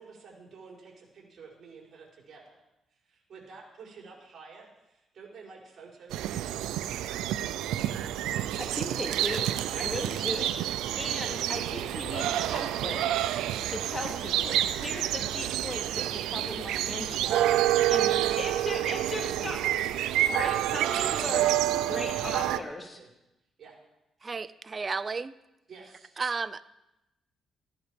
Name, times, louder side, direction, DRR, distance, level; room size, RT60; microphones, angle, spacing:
voice 1, 0.0-2.6 2.9-6.7 12.9-13.0 17.5-18.5 21.0-23.1 23.6-23.8 25.7-26.1, right 4 dB, 50° right, -2 dB, 5.4 m, -50 dB
sound 1, 6.1-22.6, right 12 dB, 90° right, 0.5 m, -28 dB
voice 2, 8.6-10.5 10.9-13.0 13.7-17.4 17.9-19.6 20.3-21.5 21.9-23.0, left 2 dB, 25° left, 1 dB, 3.1 m, -37 dB
voice 3, 24.2-25.3 26.2-26.6, right 4 dB, 30° right, 15 dB, 0.5 m, -32 dB
15.0 x 11.0 x 5.2 m, 0.93 s
cardioid pair, 90°, 0 cm